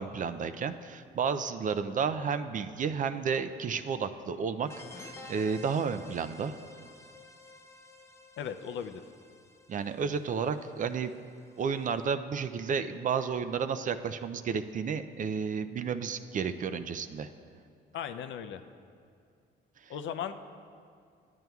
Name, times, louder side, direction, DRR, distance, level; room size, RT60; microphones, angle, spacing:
voice 1, 0.0-4.7 4.9-6.5 9.7-11.1 11.6-17.3, right 6 dB, 40° right, 10 dB, 0.4 m, -32 dB
sound 1, 4.7-12.0, left 2 dB, 15° left, 0.5 m, -51 dB
voice 2, 8.4-9.0 17.9-18.6 19.9-20.4, left 8 dB, 70° left, 8 dB, 0.5 m, -37 dB
11.0 x 9.1 x 2.3 m, 2.3 s
cardioid pair, 90°, 20 cm